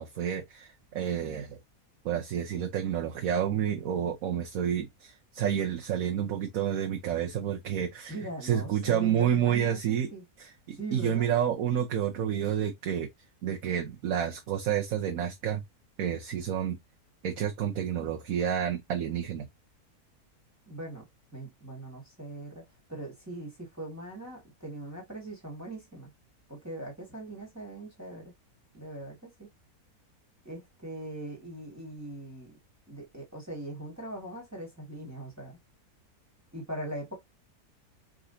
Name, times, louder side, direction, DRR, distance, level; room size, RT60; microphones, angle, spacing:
voice 1, 0.0-1.6 2.0-8.1 8.4-10.1 10.4-13.1 13.4-15.6 16.0-16.8 17.2-19.5, right 9 dB, 65° right, 1.2 m, -29 dB
voice 2, 8.1-10.2 10.8-11.3 20.7-21.1 21.3-22.6 22.9-26.1 26.5-28.3 28.7-29.5 30.5-32.5 32.9-35.6 36.5-37.1, right 1 dB, 10° right, 1.8 m, -41 dB
4.6 x 3.8 x 2.7 m
omnidirectional pair, 1.6 m